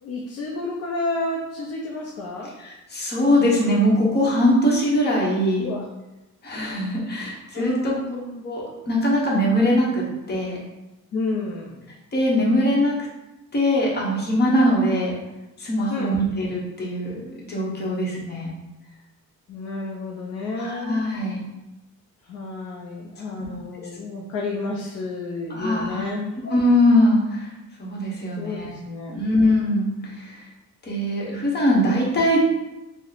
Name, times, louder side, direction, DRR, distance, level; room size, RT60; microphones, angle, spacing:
voice 1, 0.0-2.5 5.6-5.8 7.5-8.4 11.1-11.8 15.9-16.2 19.5-21.0 22.2-26.3 28.4-29.2, left 2 dB, 50° left, -2 dB, 0.5 m, -30 dB
voice 2, 2.6-5.6 6.4-7.9 8.4-10.6 12.1-12.9 13.5-15.1 15.6-18.5 20.6-21.4 23.4-23.5 25.5-26.1 26.4-27.5 27.8-28.7 29.1-29.9 30.2-30.4 30.8-32.4, left 1 dB, 30° left, -3 dB, 1.0 m, -21 dB
2.9 x 2.1 x 3.9 m, 1.0 s
cardioid pair, 115°, 32 cm